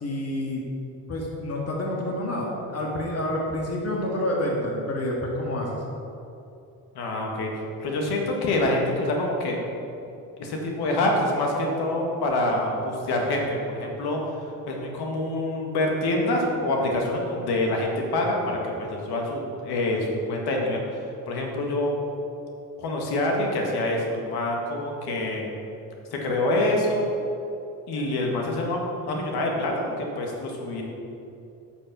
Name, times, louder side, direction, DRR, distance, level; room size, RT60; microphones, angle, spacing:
voice 1, 0.0-0.7 1.1-5.8, left 1 dB, 40° left, -2 dB, 1.8 m, -28 dB
voice 2, 7.0-7.5 7.8-9.6 10.4-20.8 21.3-21.9 22.8-25.5 26.1-27.1 27.9-30.8, left 1 dB, 70° left, 0 dB, 1.6 m, -26 dB
8.5 x 5.4 x 5.8 m, 2.8 s
supercardioid pair, 60°, 39 cm